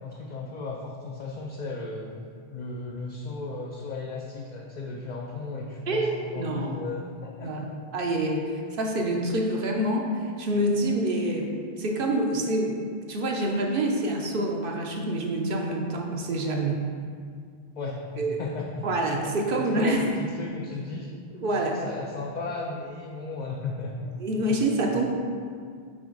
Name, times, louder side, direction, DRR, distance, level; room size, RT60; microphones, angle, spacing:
voice 1, 0.0-2.1 2.5-7.6 17.8-18.8 19.5-21.1 21.5-24.0 24.5-24.6 24.9-25.1, left 3 dB, 55° left, -2 dB, 0.6 m, -35 dB
voice 2, 5.9-6.8 7.4-7.7 7.9-11.5 11.8-12.8 13.1-16.8 18.2-18.4 18.8-20.0 21.4-21.8 24.2-25.1, right 1 dB, 65° right, 1 dB, 0.8 m, -26 dB
6.1 x 4.3 x 3.8 m, 2.1 s
omnidirectional pair, 1.0 m